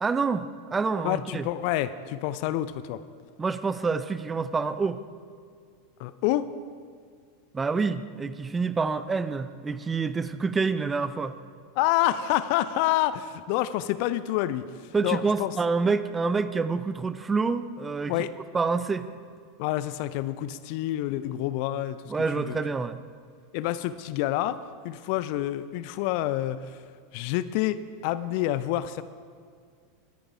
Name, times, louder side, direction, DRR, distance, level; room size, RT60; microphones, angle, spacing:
voice 1, 0.0-1.5 3.4-5.0 7.5-11.3 14.9-18.2 18.5-19.1 22.1-23.0, right 4 dB, 15° right, 13 dB, 0.6 m, -27 dB
voice 2, 1.0-3.0 6.0-6.5 11.8-14.6 15.0-15.5 18.1-18.3 19.6-22.0 22.4-22.6 23.5-24.6 24.8-26.6 27.1-29.0, left 14 dB, 50° left, 14 dB, 0.6 m, -27 dB
22.0 x 10.5 x 4.8 m, 2.1 s
figure-of-eight pair, 85°, 0 cm